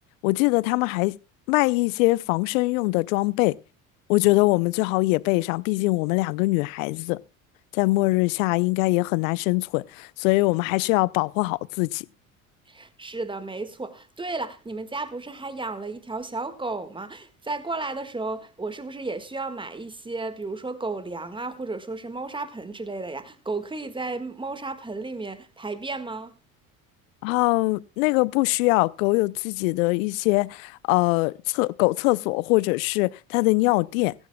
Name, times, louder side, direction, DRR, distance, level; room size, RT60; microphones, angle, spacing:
voice 1, 0.2-1.2 1.5-3.6 4.1-7.2 7.7-12.1 27.2-34.1, left 22 dB, 75° left, 0.6 m, -23 dB
voice 2, 12.7-26.3, right 3 dB, 10° right, 1.6 m, -33 dB
17.5 x 15.0 x 2.2 m
hypercardioid pair, 65°, 41 cm